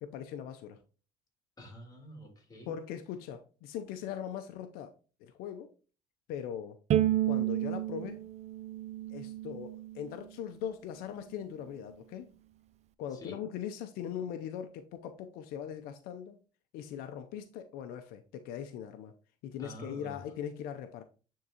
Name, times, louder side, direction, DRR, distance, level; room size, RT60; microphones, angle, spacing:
voice 1, 0.0-0.8 2.7-4.9 5.2-5.7 6.3-6.8 7.3-8.2 9.1-12.3 13.0-16.4 16.7-19.1 19.4-21.0, left 9 dB, 80° left, 0.6 m, -40 dB
voice 2, 1.6-2.7 13.1-13.4 19.6-20.2, left 1 dB, 25° left, 2.7 m, -47 dB
Bowed string instrument, 6.9-10.1, right 12 dB, 45° right, 0.4 m, -31 dB
9.3 x 3.7 x 2.8 m
cardioid pair, 100°, 15 cm